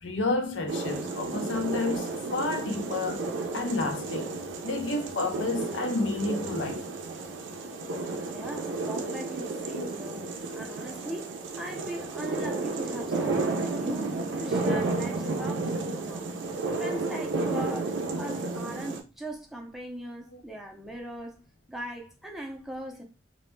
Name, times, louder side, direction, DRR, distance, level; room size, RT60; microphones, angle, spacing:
voice 1, 0.0-3.3 3.5-4.3 4.6-6.8 9.8-9.9, left 2 dB, 90° left, 0.5 m, -30 dB
sound 1, 0.7-19.0, right 3 dB, 90° right, 0.4 m, -32 dB
voice 2, 8.3-16.4 16.8-21.4 21.7-23.0, right 1 dB, ahead, 0.4 m, -40 dB
2.1 x 2.1 x 3.1 m
head